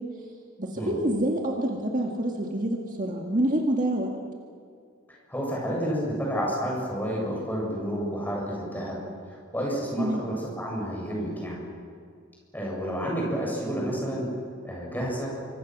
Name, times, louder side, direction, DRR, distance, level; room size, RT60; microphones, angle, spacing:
voice 1, 0.6-4.1 10.0-10.2, right 1 dB, 35° right, 0 dB, 1.9 m, -27 dB
voice 2, 5.1-9.0 9.5-11.7 12.5-14.3 14.6-15.3, equal, 10° left, -3 dB, 7.2 m, -30 dB
27.0 x 25.0 x 6.2 m, 2.2 s
head